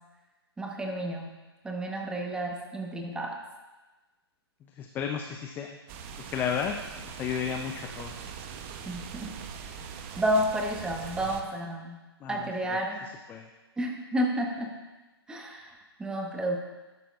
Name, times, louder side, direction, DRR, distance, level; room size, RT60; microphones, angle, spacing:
voice 1, 0.6-1.3 1.6-3.4 8.9-9.3 10.1-12.0 12.3-13.0 13.8-14.7 15.3-16.6, right 1 dB, 5° right, 1 dB, 1.1 m, -31 dB
voice 2, 4.8-5.8 6.3-8.1 12.2-12.4 13.3-13.5, left 7 dB, 15° left, 4 dB, 0.4 m, -33 dB
sound 1, 5.9-11.4, right 6 dB, 30° right, 0.7 m, -42 dB
12.0 x 11.0 x 2.4 m, 1.2 s
hypercardioid pair, 135°, 14 cm